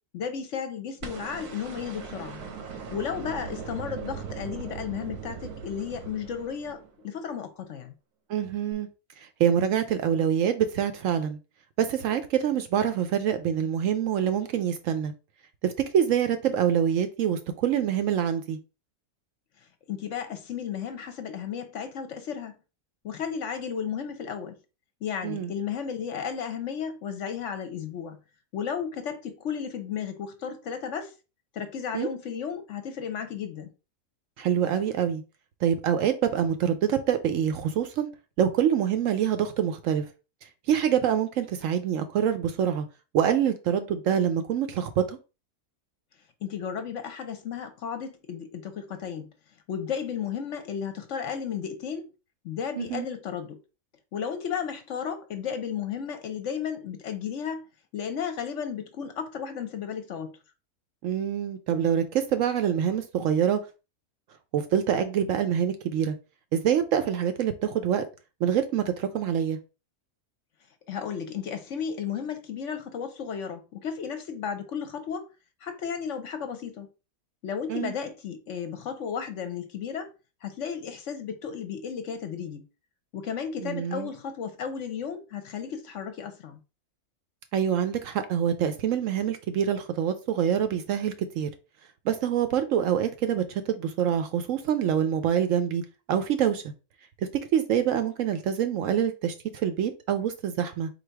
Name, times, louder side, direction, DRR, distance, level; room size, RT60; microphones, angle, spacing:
voice 1, 0.1-2.4 2.9-7.9 19.9-22.5 23.0-24.5 25.0-28.2 28.5-31.1 31.5-33.7 46.4-49.3 49.7-52.1 52.4-53.6 54.1-57.6 57.9-60.4 70.9-75.3 75.6-76.9 77.4-80.1 80.4-82.6 83.1-86.6, left 7 dB, 60° left, 0.9 m, -34 dB
sound 1, 1.0-7.2 8.7-8.8, right 6 dB, 90° right, 1.4 m, -39 dB
voice 2, 8.3-8.9 9.2-11.4 11.8-15.1 15.6-18.6 25.2-25.5 31.9-32.1 34.4-35.2 35.6-38.1 38.4-40.1 40.7-42.9 43.1-45.2 52.8-53.1 61.0-63.6 64.5-66.2 66.5-68.0 68.4-69.6 77.7-77.9 83.6-84.1 87.5-91.5 92.0-95.8 96.1-96.6 97.5-100.9, right 9 dB, 70° right, 0.9 m, -25 dB
4.0 x 2.7 x 4.5 m
omnidirectional pair, 1.6 m